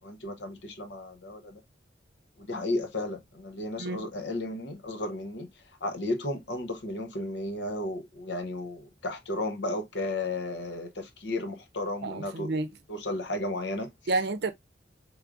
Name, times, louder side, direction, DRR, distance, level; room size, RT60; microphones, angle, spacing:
voice 1, 0.0-1.6 2.4-5.5 5.8-12.5 12.9-13.9, left 2 dB, 80° left, 0.9 m, -34 dB
voice 2, 12.0-12.7 14.1-14.5, right 2 dB, 70° right, 0.6 m, -29 dB
4.7 x 3.2 x 2.5 m
head